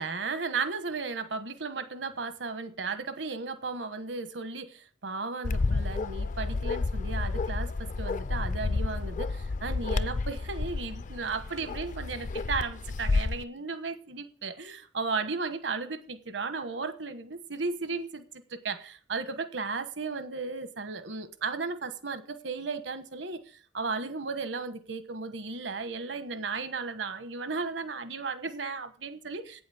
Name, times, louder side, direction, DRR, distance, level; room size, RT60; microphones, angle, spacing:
voice 1, 0.0-18.2 18.5-29.6, right 4 dB, 75° right, 1.2 m, -35 dB
Bark, 5.4-13.4, left 3 dB, 45° left, 0.4 m, -31 dB
8.9 x 7.8 x 7.0 m
head